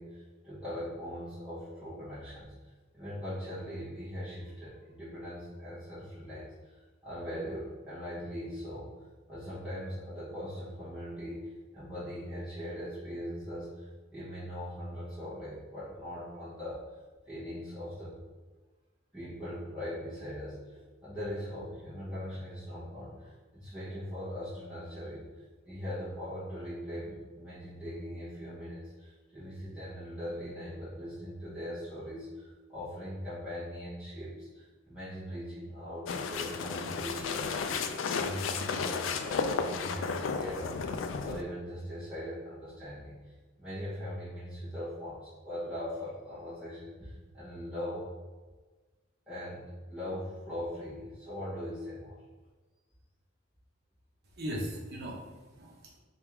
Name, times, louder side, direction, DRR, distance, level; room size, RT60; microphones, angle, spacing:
voice 1, 0.0-8.9 9.3-11.5 11.7-16.8 17.3-18.2 19.1-25.3 25.7-48.1 49.3-52.2, equal, 5° right, -14 dB, 1.1 m, -40 dB
sound 1, 36.1-41.4, left 5 dB, 70° left, 0.3 m, -33 dB
voice 2, 54.2-56.0, equal, 55° right, -1 dB, 0.8 m, -39 dB
3.4 x 2.4 x 4.4 m, 1.3 s
head